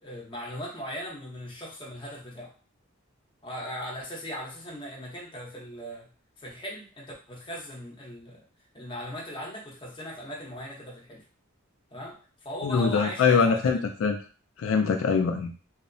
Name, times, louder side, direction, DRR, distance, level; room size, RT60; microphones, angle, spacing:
voice 1, 0.0-2.5 3.4-6.1 6.4-8.4 8.7-11.2 11.9-12.2 12.4-13.8, equal, 25° left, -3 dB, 0.8 m, -38 dB
voice 2, 12.6-14.2 14.6-15.5, left 5 dB, 75° left, 3 dB, 0.3 m, -23 dB
2.7 x 2.0 x 2.6 m, 0.37 s
head